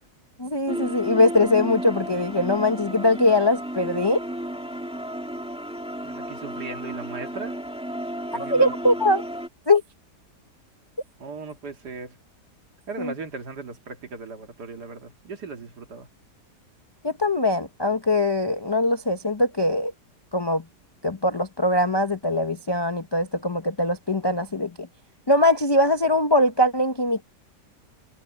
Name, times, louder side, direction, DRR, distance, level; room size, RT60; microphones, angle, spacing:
voice 1, 0.4-4.2 8.5-9.2 9.7-9.8 13.0-13.1 17.0-19.9 20.3-20.6 21.0-24.9 25.3-27.2, left 1 dB, 35° left, 0.3 m, -21 dB
sound 1, 0.7-9.5, equal, 5° right, 2.5 m, -33 dB
voice 2, 6.0-7.6 8.3-8.7 11.2-12.2 12.9-16.1, right 4 dB, 65° right, 2.7 m, -37 dB
omnidirectional pair, 1.9 m